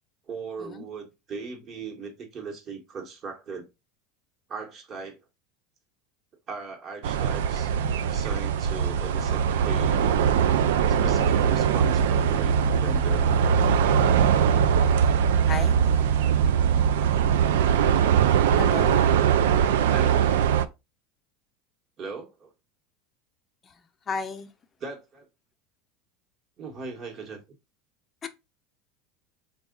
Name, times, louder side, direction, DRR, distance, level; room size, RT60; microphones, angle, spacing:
voice 1, 0.3-3.7 4.5-5.2 6.5-7.7 8.0-10.1 10.9-13.6 19.9-20.4 22.0-22.5 24.8-25.2 26.6-27.4, right 4 dB, 40° right, 1.2 m, -38 dB
sound 1, 7.0-20.6, right 8 dB, 85° right, 0.3 m, -21 dB
voice 2, 15.5-15.8 18.6-19.0 23.6-24.5 28.2-28.3, left 5 dB, 25° left, 0.6 m, -34 dB
3.5 x 2.3 x 3.7 m
supercardioid pair, 110°, 0 cm